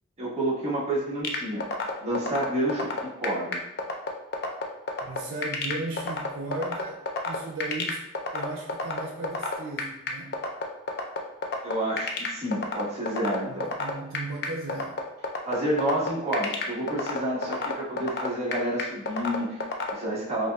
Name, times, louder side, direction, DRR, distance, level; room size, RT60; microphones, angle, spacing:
voice 1, 0.2-1.7 2.0-3.6 11.6-13.7 15.4-20.5, right 1 dB, 35° right, -8 dB, 1.3 m, -29 dB
sound 1, 1.2-19.9, left 4 dB, 55° left, 0.4 m, -29 dB
voice 2, 5.0-8.1 8.3-10.4 13.5-15.0, right 2 dB, 85° right, -1 dB, 0.5 m, -36 dB
5.3 x 2.3 x 2.2 m, 0.84 s
head